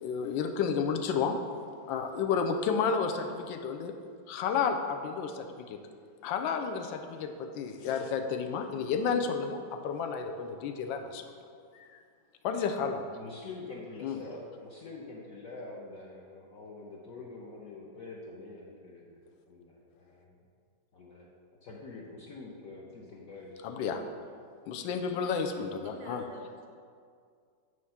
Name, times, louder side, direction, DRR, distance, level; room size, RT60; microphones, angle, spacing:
voice 1, 0.0-1.4 1.9-3.9 4.3-5.3 6.2-6.9 7.2-9.6 9.8-11.2 12.4-13.0 14.0-14.2 23.6-24.0 24.7-26.2, left 6 dB, 85° left, 6 dB, 1.3 m, -31 dB
voice 2, 13.2-20.3 20.9-21.3 21.6-23.9, left 3 dB, 60° left, -4 dB, 1.0 m, -46 dB
voice 3, 25.8-26.7, right 3 dB, 60° right, 3 dB, 0.4 m, -49 dB
9.3 x 3.2 x 5.6 m, 2.2 s
omnidirectional pair, 2.0 m